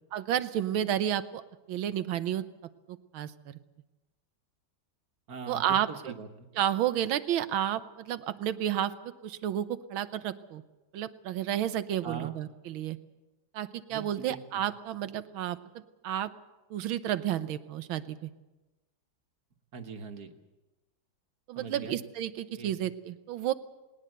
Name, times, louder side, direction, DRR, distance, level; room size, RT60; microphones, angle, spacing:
voice 1, 0.1-1.4 1.7-2.4 2.9-3.5 5.5-5.9 6.6-10.6 10.9-13.0 13.5-15.6 16.0-16.3 16.7-18.3 21.5-23.5, right 11 dB, 85° right, 13 dB, 1.7 m, -31 dB
voice 2, 5.3-6.5 12.0-12.4 13.9-14.6 19.7-20.3 21.6-22.0 22.6-22.8, right 5 dB, 55° right, 6 dB, 1.8 m, -42 dB
20.0 x 18.5 x 8.0 m, 1.1 s
omnidirectional pair, 2.2 m